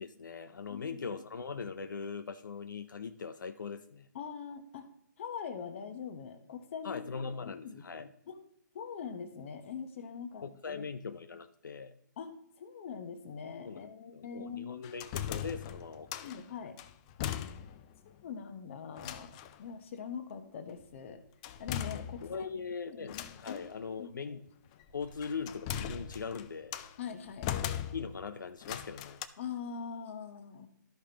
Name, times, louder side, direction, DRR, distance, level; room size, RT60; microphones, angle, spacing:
voice 1, 0.0-4.1 6.8-8.1 10.4-12.0 13.6-16.3 22.2-24.4 24.9-26.8 27.9-29.2, left 5 dB, 80° left, 8 dB, 0.5 m, -41 dB
voice 2, 0.7-1.0 4.1-4.9 5.2-7.8 8.3-8.4 8.7-10.9 12.2-14.8 16.2-16.8 17.2-17.3 18.0-21.2 21.6-22.5 22.9-23.6 23.9-24.4 27.0-27.5 29.4-30.7, left 7 dB, 40° left, 7 dB, 1.0 m, -43 dB
sound 1, 14.8-16.4 16.8-17.9 18.2-18.3 19.0-19.6 21.4-22.5 23.1-23.7 24.8-27.0 27.4-28.3 28.6-29.3, left 10 dB, 20° left, 0.3 m, -39 dB
13.0 x 5.1 x 2.9 m, 0.75 s
hypercardioid pair, 150°, 10 cm